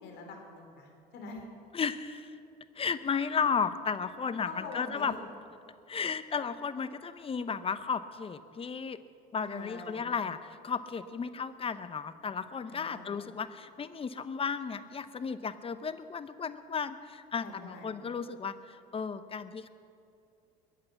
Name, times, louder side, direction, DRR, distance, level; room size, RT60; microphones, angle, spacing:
voice 1, 0.0-1.4 4.5-5.1 9.4-10.0 12.7-13.1 17.4-17.9, left 3 dB, 65° left, 2 dB, 4.0 m, -45 dB
voice 2, 1.7-2.3 2.8-5.1 5.9-9.0 9.3-19.7, left 6 dB, 30° left, 12 dB, 0.9 m, -34 dB
22.0 x 8.7 x 7.1 m, 2.5 s
supercardioid pair, 80°, 20 cm